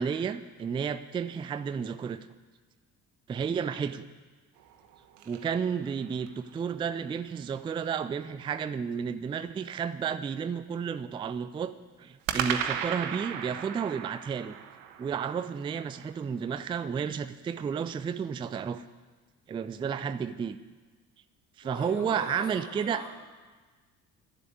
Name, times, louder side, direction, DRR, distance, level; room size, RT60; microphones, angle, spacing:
voice 1, 0.0-2.3 3.3-4.1 5.3-11.7 12.0-14.6 15.0-18.8 19.5-20.6 21.6-23.0, right 7 dB, 10° right, 12 dB, 0.3 m, -32 dB
sound 1, 4.6-6.5 12.3-16.5, right 9 dB, 55° right, 1.2 m, -36 dB
voice 2, 21.6-23.1, left 3 dB, 50° left, -3 dB, 3.8 m, -42 dB
11.0 x 7.6 x 9.5 m, 1.4 s
figure-of-eight pair, 50°, 50 cm